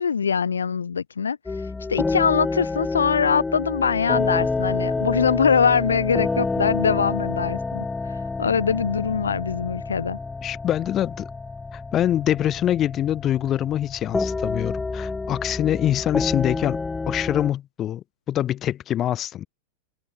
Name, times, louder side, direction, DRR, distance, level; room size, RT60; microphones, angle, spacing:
voice 1, 0.0-10.2, left 6 dB, 70° left, 0.6 m, -23 dB
sound 1, 1.5-17.5, left 3 dB, 10° left, 0.7 m, -28 dB
voice 2, 10.4-11.3 11.7-16.8 17.1-19.5, left 11 dB, 30° left, 2.1 m, -24 dB
figure-of-eight pair, 90°, 0 cm